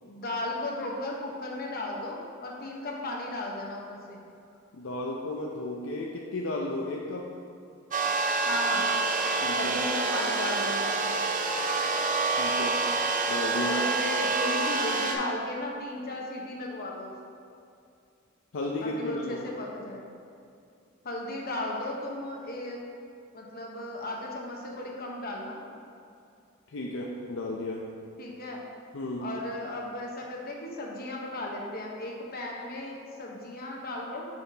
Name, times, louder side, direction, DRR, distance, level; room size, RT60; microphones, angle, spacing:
voice 1, 0.0-4.2 8.4-8.9 9.5-11.1 13.6-17.1 18.8-20.1 21.0-22.8 23.3-25.6 28.2-28.6 29.2-34.3, left 1 dB, 50° left, -1 dB, 1.0 m, -35 dB
voice 2, 4.7-7.3 9.4-9.9 12.3-12.8 13.3-13.8 18.5-19.5 26.7-27.8 28.9-29.3, left 1 dB, 70° left, -2 dB, 0.5 m, -34 dB
sound 1, 7.9-15.1, right 3 dB, 40° right, 0.6 m, -27 dB
8.0 x 5.7 x 2.8 m, 2.5 s
head